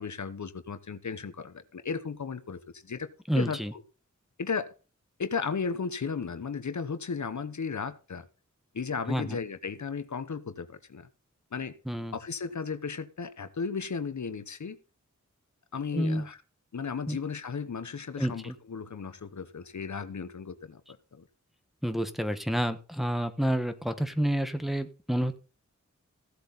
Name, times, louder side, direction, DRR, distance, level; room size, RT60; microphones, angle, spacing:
voice 1, 0.0-3.1 3.3-3.8 4.4-4.7 5.2-8.3 8.7-11.1 11.5-11.7 12.1-14.8 15.7-16.4 16.7-20.8 21.1-21.2, left 5 dB, 70° left, 0.9 m, -35 dB
voice 2, 3.3-3.7 9.1-9.4 11.9-12.2 15.9-16.3 17.1-17.2 18.2-18.5 21.8-25.4, equal, ahead, 1.3 m, -29 dB
15.5 x 7.9 x 4.0 m
wide cardioid pair, 65°, 30 cm